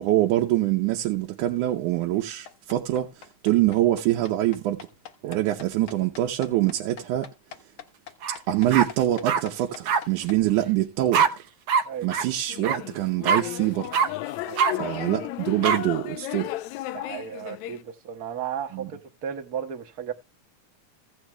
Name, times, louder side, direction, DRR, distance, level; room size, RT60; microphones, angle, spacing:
voice 1, 0.0-4.9 5.2-7.3 8.3-11.4 12.0-14.0 14.7-16.5 18.7-18.9, right 14 dB, 85° right, 2.4 m, -25 dB
sound 1, 2.5-10.4, left 8 dB, 55° left, 1.7 m, -44 dB
sound 2, 8.2-8.4 8.7-9.4 9.9-10.0 11.1-11.3 11.7-11.8 12.1-12.2 12.6-12.8 13.2-13.4 13.9-14.1 14.6-14.7 15.6-15.8, right 6 dB, 65° right, 1.6 m, -22 dB
sound 3, 12.5-17.8, left 15 dB, 80° left, 1.9 m, -34 dB
voice 2, 14.4-14.9 16.9-20.1, right 8 dB, 45° right, 1.3 m, -35 dB
16.0 x 9.0 x 2.2 m
omnidirectional pair, 3.4 m